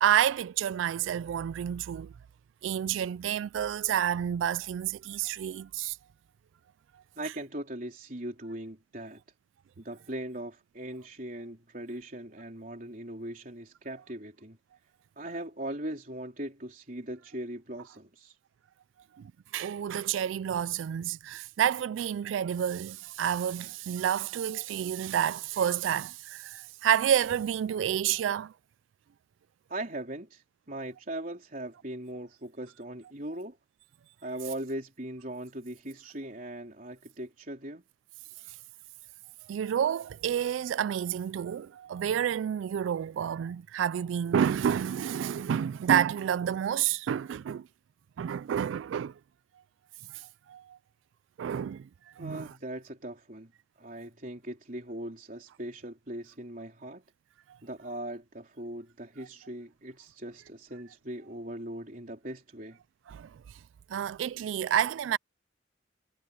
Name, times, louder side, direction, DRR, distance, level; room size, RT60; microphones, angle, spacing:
voice 1, 0.0-2.1 2.6-6.0 19.2-28.5 39.5-47.7 48.2-49.1 50.1-50.8 51.4-51.9 52.2-52.5 63.1-63.4 63.9-65.2, right 9 dB, 90° right, 0.3 m, -29 dB
voice 2, 7.2-9.2 9.8-14.6 15.2-18.4 29.7-33.6 34.2-37.8 52.2-53.5 53.8-57.0 57.6-62.8, right 1 dB, 45° right, 3.8 m, -40 dB
head